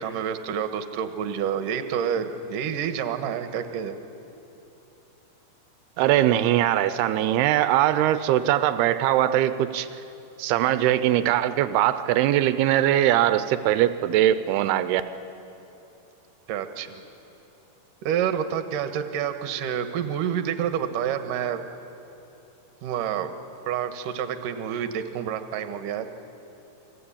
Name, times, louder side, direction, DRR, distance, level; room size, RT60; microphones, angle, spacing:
voice 1, 0.0-4.0 16.5-17.0 18.0-21.6 22.8-23.4 23.7-26.1, right 8 dB, 65° right, 8 dB, 2.6 m, -28 dB
voice 2, 6.0-9.9 10.4-15.0, right 12 dB, 90° right, 12 dB, 2.7 m, -21 dB
28.5 x 21.0 x 8.7 m, 2.9 s
omnidirectional pair, 4.5 m